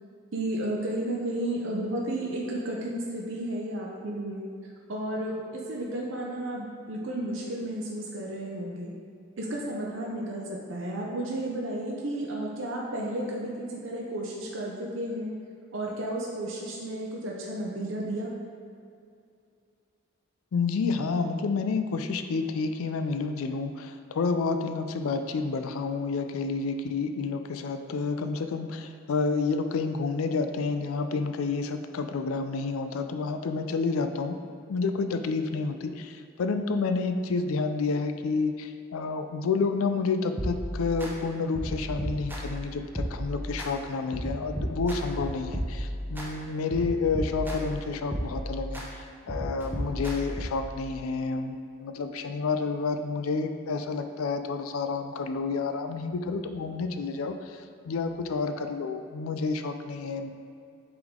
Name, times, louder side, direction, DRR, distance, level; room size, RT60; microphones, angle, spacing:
voice 1, 0.3-4.4 4.9-8.9 9.4-15.3 15.7-18.3, right 1 dB, 65° right, -2 dB, 0.7 m, -32 dB
voice 2, 20.5-34.4 34.7-60.3, left 4 dB, 85° left, 8 dB, 0.4 m, -29 dB
sound 1, 40.4-41.1 41.5-42.6 43.0-43.7 44.1-46.3 46.7-47.8 48.1-48.9 49.3-50.7, equal, 10° right, 0.7 m, -33 dB
7.8 x 3.7 x 3.7 m, 2.4 s
head